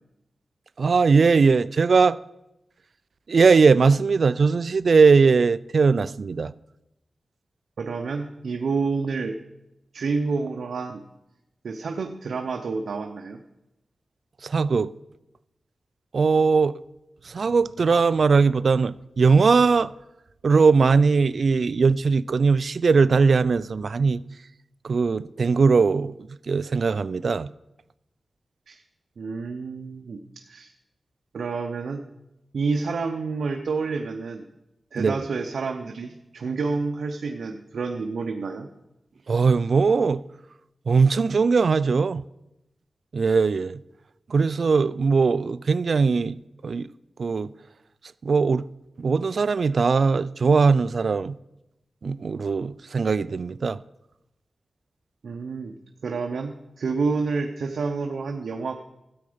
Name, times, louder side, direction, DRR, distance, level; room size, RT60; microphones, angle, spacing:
voice 1, 0.8-2.2 3.3-6.5 14.4-14.9 16.1-16.7 17.3-19.9 20.4-24.2 24.8-26.1 26.5-27.5 35.0-35.1 39.3-40.2 40.9-42.2 43.1-43.8 44.3-46.4 46.6-46.9 47.2-47.5 48.2-48.6 49.0-51.3 52.0-53.8, right 4 dB, 65° right, 0.3 m, -20 dB
voice 2, 7.8-9.4 9.9-11.0 11.6-13.4 28.7-28.8 29.2-30.7 31.3-32.0 32.5-34.4 34.9-38.7 55.2-55.8 56.0-58.7, right 4 dB, 85° right, 0.7 m, -29 dB
13.5 x 8.7 x 5.1 m
wide cardioid pair, 85°, 0 cm